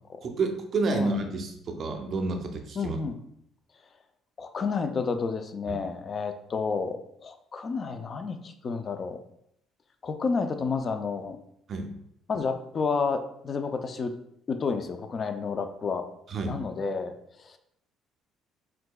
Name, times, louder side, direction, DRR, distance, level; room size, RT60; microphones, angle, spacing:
voice 1, 0.2-3.0 5.7-5.8 11.7-11.9 16.3-16.6, right 3 dB, 40° right, 5 dB, 0.5 m, -29 dB
voice 2, 2.8-3.2 4.4-9.2 10.0-11.4 12.3-14.1 14.5-16.1 16.5-17.1 17.4-17.6, left 4 dB, 30° left, 7 dB, 0.4 m, -30 dB
4.7 x 3.7 x 2.3 m, 0.75 s
cardioid pair, 145°, 0 cm